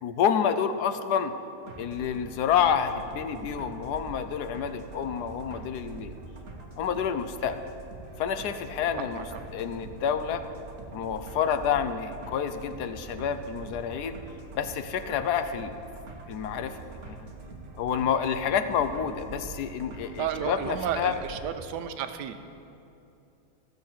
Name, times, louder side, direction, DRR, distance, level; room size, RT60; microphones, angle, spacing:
voice 1, 0.0-1.3 1.8-6.1 6.8-7.6 8.2-9.2 9.5-10.4 10.9-14.2 14.6-15.8 16.3-16.8 17.1-17.3 17.8-21.1, left 8 dB, 75° left, 10 dB, 1.2 m, -28 dB
sound 1, 1.6-21.5, right 3 dB, 40° right, 1.3 m, -44 dB
voice 2, 8.9-9.4 20.2-22.5, right 8 dB, 85° right, 9 dB, 1.3 m, -33 dB
14.5 x 6.6 x 7.3 m, 2.7 s
omnidirectional pair, 1.8 m